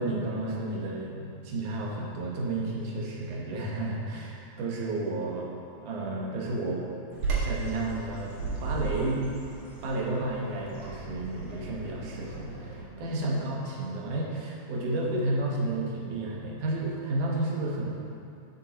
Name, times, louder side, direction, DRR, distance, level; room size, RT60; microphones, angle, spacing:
voice 1, 0.0-5.5 5.8-6.8 7.4-8.3 8.6-9.3 9.8-17.9, right 2 dB, 85° right, -3 dB, 2.8 m, -31 dB
Bird vocalization bird call bird song, 7.1-12.8, right 4 dB, 60° right, 2.9 m, -35 dB
13.0 x 5.6 x 4.2 m, 2.6 s
omnidirectional pair, 3.5 m